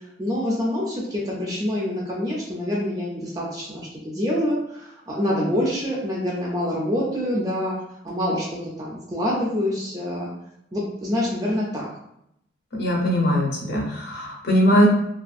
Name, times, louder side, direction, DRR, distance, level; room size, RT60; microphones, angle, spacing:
voice 1, 0.2-7.7 8.0-10.3 10.7-11.9, left 1 dB, 20° right, -4 dB, 0.4 m, -26 dB
voice 2, 12.8-14.9, equal, 60° left, -2 dB, 0.7 m, -20 dB
2.5 x 2.3 x 2.4 m, 0.77 s
head